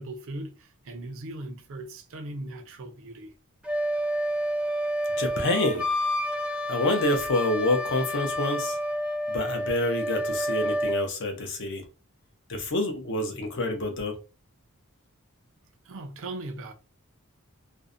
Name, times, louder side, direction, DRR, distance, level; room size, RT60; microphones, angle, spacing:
voice 1, 0.0-3.3 15.8-16.7, right 2 dB, 65° right, 0.5 m, -38 dB
Wind instrument woodwind instrument, 3.6-11.1, equal, 5° right, 0.3 m, -29 dB
voice 2, 5.2-5.8 6.7-8.8 9.3-11.8 12.5-14.2, left 1 dB, 55° left, 0.6 m, -27 dB
2.5 x 2.1 x 2.4 m
head